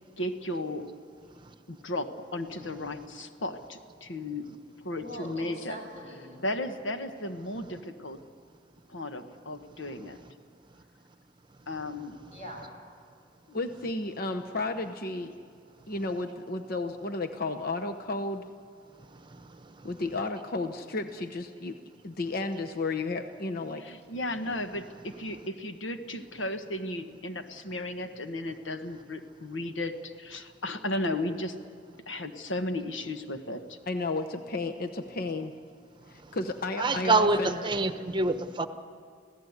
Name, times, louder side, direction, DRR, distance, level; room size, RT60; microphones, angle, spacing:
voice 1, 0.2-0.9 1.7-4.5 4.8-5.8 6.4-8.2 8.9-10.2 11.7-12.2 23.8-31.5 32.1-33.8, left 1 dB, 80° left, 7 dB, 1.4 m, -35 dB
voice 2, 5.0-6.4 12.3-12.7 36.8-38.0, equal, 35° left, 1 dB, 5.9 m, -42 dB
voice 3, 13.5-15.3 15.9-18.4 19.8-21.8 22.0-23.8 33.9-35.5 36.1-37.6, left 2 dB, 50° left, 6 dB, 0.9 m, -32 dB
voice 4, 36.8-38.7, right 3 dB, 25° right, 9 dB, 1.0 m, -25 dB
26.5 x 16.5 x 8.2 m, 2.3 s
head